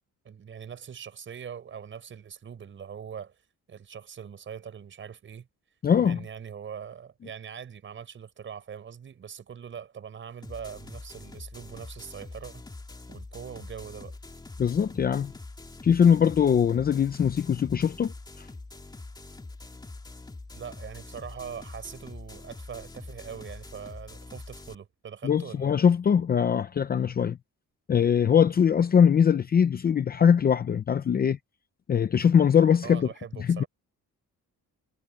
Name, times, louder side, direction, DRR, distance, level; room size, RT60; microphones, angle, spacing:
voice 1, 0.2-3.3 3.7-5.5 6.0-12.6 13.1-14.2 20.5-25.7 32.8-33.7, right 7 dB, 40° right, 6.4 m, -42 dB
voice 2, 5.8-6.2 14.6-15.3 15.8-18.5 25.2-27.4 27.9-31.4 31.9-33.1 33.4-33.6, left 7 dB, 30° left, 0.7 m, -22 dB
sound 1, 10.4-24.7, left 2 dB, 15° left, 3.0 m, -44 dB
cardioid pair, 165°, 31 cm